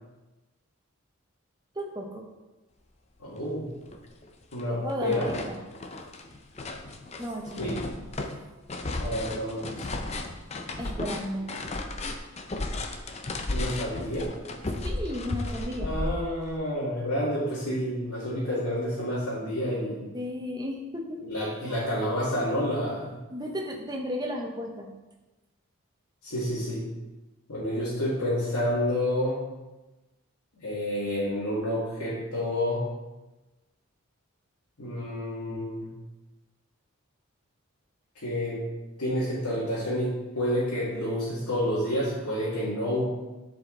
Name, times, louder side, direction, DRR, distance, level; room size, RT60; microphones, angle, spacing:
voice 1, 1.7-2.3 4.8-5.6 7.2-7.7 10.8-11.5 14.8-15.9 20.1-21.2 21.7-21.9 23.3-24.9, equal, 20° right, 1 dB, 1.0 m, -34 dB
voice 2, 3.2-3.7 4.5-5.3 7.6-7.8 9.0-10.0 13.5-14.3 15.8-20.1 21.2-23.2 26.2-26.8 27.5-29.4 30.6-32.9 34.8-35.9 38.1-38.6 39.0-43.0, left 1 dB, 90° left, -8 dB, 2.2 m, -29 dB
sound 1, 3.4-3.5 3.9-4.6 4.9-16.6, left 2 dB, 30° left, 0.5 m, -34 dB
9.7 x 5.1 x 3.9 m, 1.1 s
head